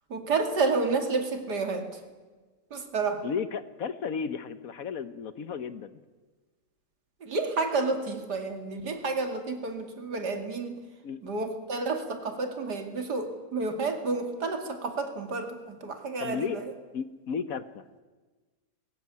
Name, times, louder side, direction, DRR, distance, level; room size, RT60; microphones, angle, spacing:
voice 1, 0.1-2.0 2.7-3.2 7.2-10.8 11.2-16.7, right 3 dB, 75° right, 6 dB, 2.9 m, -30 dB
voice 2, 3.2-6.0 11.0-11.2 16.2-16.6 16.9-17.8, left 6 dB, 60° left, 13 dB, 1.2 m, -34 dB
21.0 x 17.0 x 9.5 m, 1.3 s
omnidirectional pair, 1.8 m